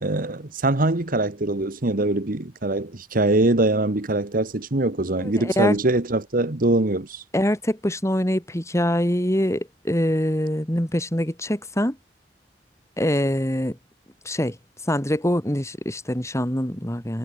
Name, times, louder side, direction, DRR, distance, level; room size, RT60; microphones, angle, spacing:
voice 1, 0.0-7.2, right 2 dB, 55° right, 1.5 m, -23 dB
voice 2, 5.2-5.8 7.3-12.0 13.0-13.8 14.2-14.6 14.9-17.2, left 1 dB, 15° left, 3.3 m, -24 dB
head